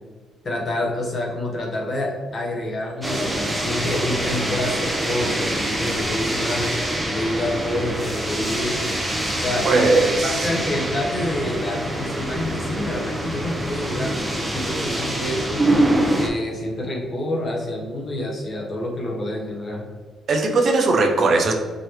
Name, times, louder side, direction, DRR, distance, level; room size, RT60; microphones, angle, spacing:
voice 1, 0.4-6.7 7.1-8.8 9.3-9.9 10.2-15.7 16.1-19.9, left 1 dB, 45° left, -1 dB, 1.2 m, -27 dB
sound 1, 3.0-16.3, right 1 dB, 5° right, 1.0 m, -25 dB
voice 2, 9.6-10.5 20.3-21.5, right 3 dB, 55° right, 2 dB, 0.7 m, -19 dB
5.1 x 3.0 x 3.2 m, 1.5 s
cardioid pair, 90°, 0 cm